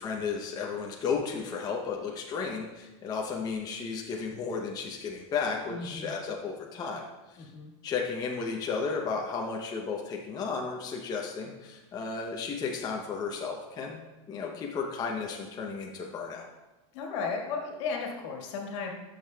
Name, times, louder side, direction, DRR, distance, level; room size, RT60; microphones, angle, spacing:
voice 1, 0.0-7.1 7.3-7.5 7.8-14.0 14.3-16.5, left 5 dB, 25° left, 0 dB, 0.7 m, -33 dB
voice 2, 5.7-6.1 7.4-7.7 16.9-18.9, left 5 dB, 65° left, 1 dB, 1.7 m, -35 dB
12.0 x 6.5 x 2.3 m, 1.1 s
supercardioid pair, 140°, 17 cm